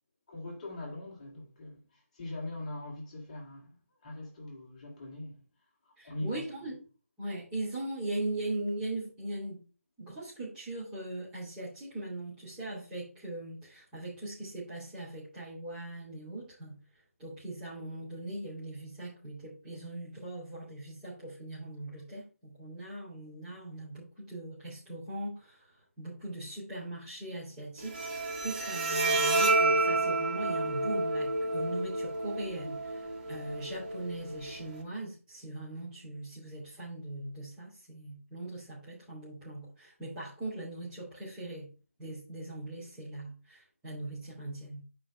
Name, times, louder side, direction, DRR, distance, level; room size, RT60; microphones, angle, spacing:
voice 1, 0.3-5.4 5.9-6.4, left 1 dB, 30° left, 1.9 m, -42 dB
voice 2, 6.0-6.8 7.2-9.7 10.0-16.8 17.2-25.7 26.0-28.0 28.4-41.7 42.0-44.8, right 1 dB, 10° right, 3.3 m, -40 dB
Bowed string instrument, 27.8-34.8, right 2 dB, 30° right, 1.5 m, -30 dB
6.3 x 4.8 x 5.3 m
figure-of-eight pair, 155°, 8 cm